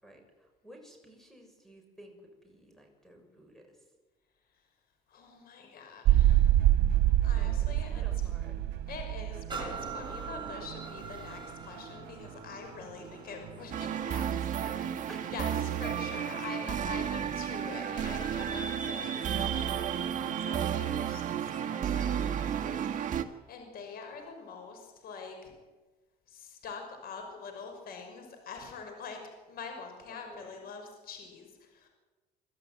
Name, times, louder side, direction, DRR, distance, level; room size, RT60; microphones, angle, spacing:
voice 1, 0.0-3.7 7.3-8.6 14.5-15.3 15.8-15.9 30.1-30.7, right 1 dB, ahead, 3 dB, 6.5 m, -53 dB
voice 2, 5.1-6.7 7.2-8.3 8.9-14.5 15.2-20.0 20.4-25.5 26.3-29.2 29.5-31.9, left 5 dB, 60° left, 4 dB, 5.9 m, -45 dB
sound 1, 6.0-23.1, right 13 dB, 85° right, 1.7 m, -32 dB
sound 2, 9.5-17.1 17.7-17.8, right 5 dB, 25° right, 4.1 m, -45 dB
sound 3, 13.7-23.2, right 9 dB, 50° right, 1.6 m, -32 dB
25.0 x 13.0 x 9.5 m, 1.2 s
cardioid pair, 110°, 17 cm